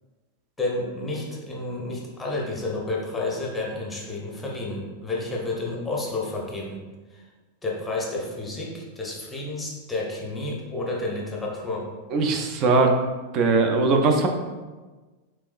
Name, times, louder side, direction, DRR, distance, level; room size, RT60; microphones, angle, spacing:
voice 1, 0.6-6.8 7.1-7.2 7.6-11.9, left 2 dB, 10° left, -2 dB, 0.8 m, -30 dB
voice 2, 12.1-12.9 13.3-14.3, right 3 dB, 35° right, 4 dB, 0.4 m, -20 dB
3.5 x 3.2 x 2.4 m, 1.3 s
figure-of-eight pair, 90°, 0 cm